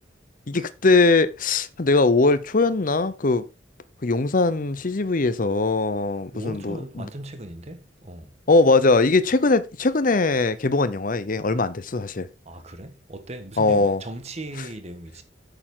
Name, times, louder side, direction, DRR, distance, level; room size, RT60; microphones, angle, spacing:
voice 1, 0.5-3.4 4.0-7.1 8.5-12.3 13.6-14.0, left 3 dB, 45° left, 0.8 m, -21 dB
voice 2, 6.3-8.3 12.4-15.2, right 1 dB, 35° right, 1.4 m, -38 dB
8.9 x 6.9 x 3.8 m
head